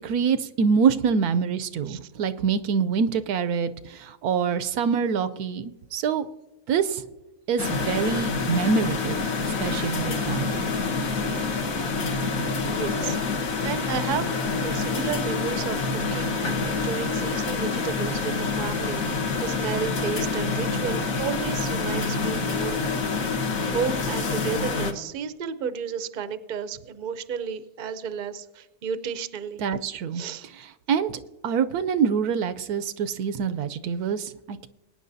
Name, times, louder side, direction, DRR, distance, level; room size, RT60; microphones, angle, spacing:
voice 1, 0.0-6.3 6.7-7.0 7.5-9.2 9.6-10.6 29.6-30.2 30.9-34.7, right 6 dB, 80° right, 11 dB, 1.1 m, -25 dB
sound 1, 7.6-24.9, left 4 dB, 60° left, 1.5 m, -27 dB
voice 2, 12.6-22.8 23.6-29.6 30.1-30.4, right 7 dB, 45° right, 10 dB, 0.6 m, -33 dB
22.0 x 9.7 x 2.7 m, 1.0 s
omnidirectional pair, 1.6 m